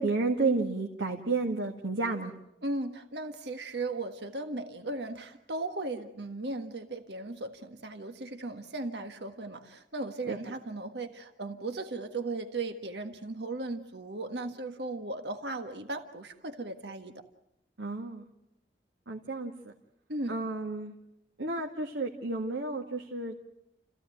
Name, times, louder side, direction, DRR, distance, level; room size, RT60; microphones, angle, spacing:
voice 1, 0.0-2.3 10.3-10.4 17.8-18.3 19.1-19.7 20.3-20.9 21.4-23.4, right 3 dB, 90° right, 2 dB, 1.9 m, -31 dB
voice 2, 2.6-17.1 20.1-20.4, right 2 dB, 65° right, 6 dB, 1.6 m, -37 dB
29.5 x 15.5 x 9.2 m, 0.83 s
head